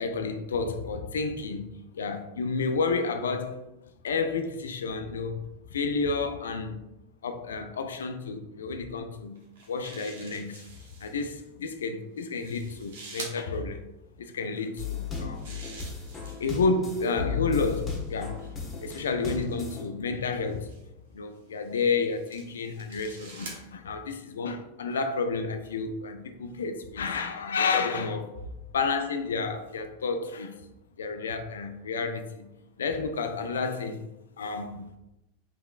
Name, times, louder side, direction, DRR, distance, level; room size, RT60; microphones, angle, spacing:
voice 1, 0.0-3.6 4.0-5.4 5.7-6.8 7.2-9.4 9.7-13.9 14.2-15.5 16.3-18.5 18.8-20.7 21.1-28.3 28.7-30.6 31.0-32.5 32.8-34.0 34.4-34.9, left 4 dB, 75° left, 0.4 m, -30 dB
sound 1, 9.3-11.3 12.2-13.4 15.0-16.6 17.5-19.6 20.5-20.8 21.6-23.6, right 3 dB, 70° right, 0.9 m, -47 dB
sound 2, 14.8-19.8, left 6 dB, 25° left, 1.1 m, -35 dB
3.6 x 3.4 x 2.3 m
figure-of-eight pair, 90°, 0 cm